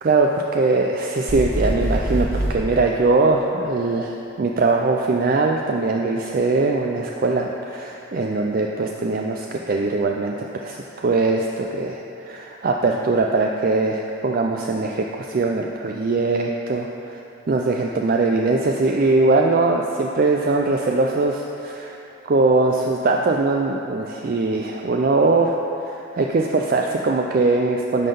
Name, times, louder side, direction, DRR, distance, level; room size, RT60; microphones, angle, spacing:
voice 1, 0.0-16.9 17.5-22.0 22.2-25.6 25.8-28.1, right 3 dB, 45° right, 1 dB, 0.4 m, -21 dB
sound 1, 1.3-2.6, right 1 dB, 25° left, 1.4 m, -23 dB
10.5 x 3.8 x 6.7 m, 2.9 s
head